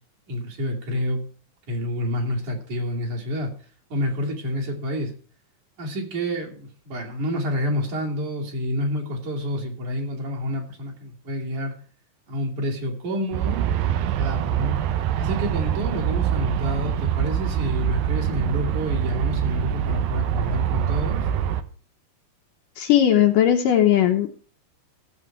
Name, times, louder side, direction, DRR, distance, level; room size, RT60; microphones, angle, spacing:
voice 1, 0.3-1.2 1.7-3.5 3.9-5.1 5.8-11.7 12.3-14.8 15.2-21.3, equal, 50° right, -1 dB, 4.0 m, -28 dB
Aircraft, 13.3-21.6, right 10 dB, 75° right, 2.5 m, -24 dB
voice 2, 22.8-24.3, left 11 dB, 70° left, 4 dB, 2.3 m, -18 dB
17.0 x 7.7 x 4.8 m, 0.42 s
omnidirectional pair, 4.6 m